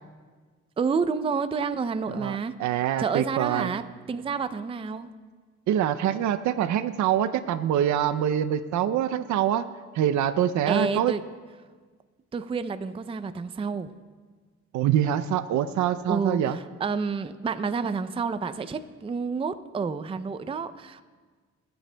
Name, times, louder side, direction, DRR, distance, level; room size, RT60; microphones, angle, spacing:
voice 1, 0.8-2.5 3.0-3.8 4.1-5.1 10.7-11.2 12.3-13.9 16.1-21.0, right 5 dB, 20° right, 12 dB, 0.4 m, -29 dB
voice 2, 2.1-3.7 5.7-9.7 9.9-11.1 14.7-16.6, right 10 dB, 70° right, 11 dB, 0.5 m, -25 dB
22.0 x 7.9 x 2.2 m, 1.5 s
cardioid pair, 90°, 30 cm